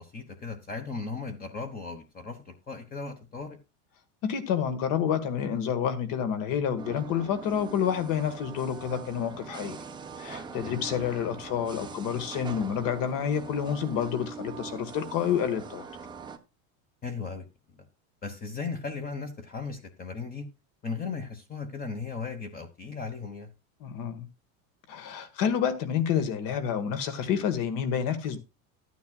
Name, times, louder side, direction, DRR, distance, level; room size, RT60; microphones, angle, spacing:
voice 1, 0.0-3.6 10.6-10.8 17.0-17.5 17.8-17.9 18.2-20.4 20.8-23.5, left 4 dB, 20° left, 6 dB, 1.2 m, -37 dB
voice 2, 4.2-9.8 10.2-15.8 23.8-24.3 24.9-28.4, left 8 dB, 50° left, 11 dB, 1.6 m, -29 dB
sound 1, 6.8-16.4, right 5 dB, 10° right, 0.7 m, -42 dB
13.5 x 9.3 x 2.3 m, 0.26 s
supercardioid pair, 145°, 42 cm